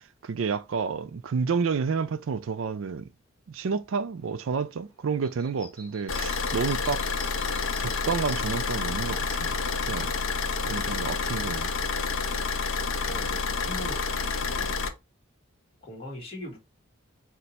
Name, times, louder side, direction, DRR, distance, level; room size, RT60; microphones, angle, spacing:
voice 1, 0.0-3.1 3.5-7.0 7.8-9.6 9.9-10.1 10.7-11.7, right 5 dB, 75° right, 0.4 m, -30 dB
sound 1, 4.2-9.3, left 1 dB, 5° left, 1.9 m, -50 dB
Car / Idling, 6.1-14.9, left 4 dB, 75° left, 0.6 m, -29 dB
voice 2, 13.0-14.8 15.8-16.6, left 1 dB, 30° left, 1.4 m, -40 dB
4.4 x 2.5 x 4.0 m
head